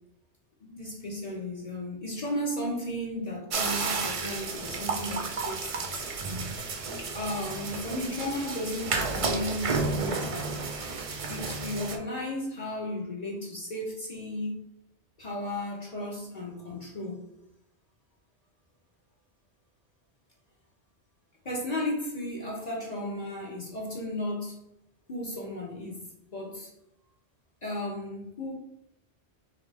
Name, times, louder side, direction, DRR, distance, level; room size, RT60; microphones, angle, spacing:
voice 1, 0.6-5.9 7.0-10.7 11.3-14.6 15.2-17.2 21.4-24.6 25.1-26.1 26.3-26.7 27.6-28.5, left 1 dB, 45° left, 0.8 m, -34 dB
sound 1, 3.5-12.0, right 4 dB, 50° right, 0.4 m, -32 dB
4.1 x 2.7 x 3.3 m
omnidirectional pair, 1.1 m